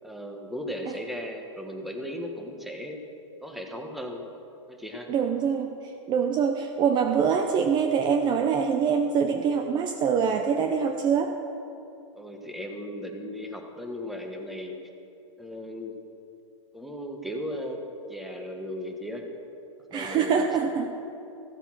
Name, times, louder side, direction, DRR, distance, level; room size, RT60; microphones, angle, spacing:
voice 1, 0.0-3.0 3.4-4.2 4.7-5.1 12.1-14.8 15.4-15.9 16.7-17.8 18.1-19.2 19.9-20.4, left 1 dB, ahead, 3 dB, 1.3 m, -36 dB
voice 2, 5.1-5.7 6.1-11.4 19.9-20.9, right 6 dB, 25° right, 5 dB, 0.7 m, -24 dB
15.0 x 8.0 x 6.2 m, 2.8 s
hypercardioid pair, 130°, 16 cm